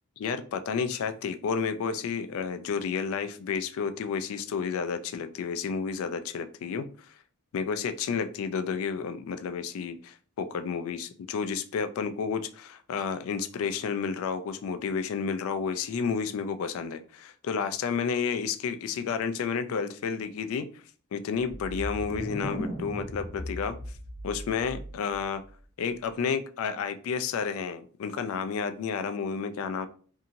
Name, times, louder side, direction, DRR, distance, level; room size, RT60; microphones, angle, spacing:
voice 1, 0.2-6.9 7.5-20.7 21.1-23.8 24.2-25.4 25.8-29.9, left 6 dB, 75° left, 9 dB, 0.3 m, -31 dB
sound 1, 21.5-25.2, equal, 35° left, 0.8 m, -37 dB
2.7 x 2.7 x 2.5 m, 0.43 s
head